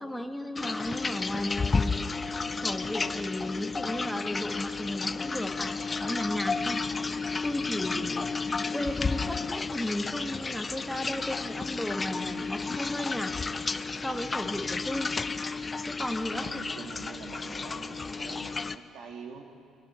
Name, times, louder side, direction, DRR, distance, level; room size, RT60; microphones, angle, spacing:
voice 1, 0.0-7.1 7.4-13.3 13.6-15.1 15.4-16.6, left 1 dB, ahead, 4 dB, 1.4 m, -35 dB
sound 1, 0.6-18.8, left 4 dB, 20° left, 0.5 m, -32 dB
voice 2, 16.3-19.4, right 5 dB, 65° right, 2 dB, 2.0 m, -45 dB
29.0 x 21.0 x 4.3 m, 2.4 s
cardioid pair, 145°, 0 cm